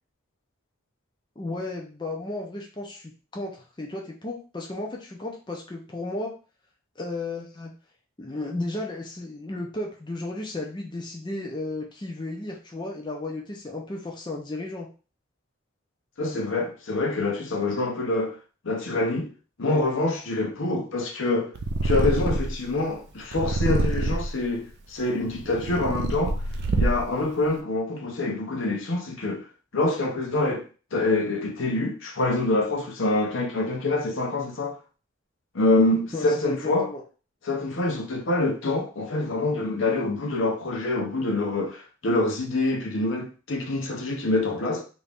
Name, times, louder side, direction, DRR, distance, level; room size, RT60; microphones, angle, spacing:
voice 1, 1.4-6.3 7.0-7.7 8.2-14.9 36.1-37.0, left 2 dB, 20° left, 0.5 m, -34 dB
voice 2, 16.2-18.3 18.6-19.3 19.6-21.5 21.8-26.4 26.7-29.4 29.7-30.6 30.9-34.8 35.5-36.9 37.4-44.8, left 2 dB, 70° left, 0.7 m, -26 dB
Purr, 21.6-22.6 23.3-24.4 25.1-27.2, right 2 dB, 55° right, 0.4 m, -25 dB
3.0 x 2.7 x 3.4 m
head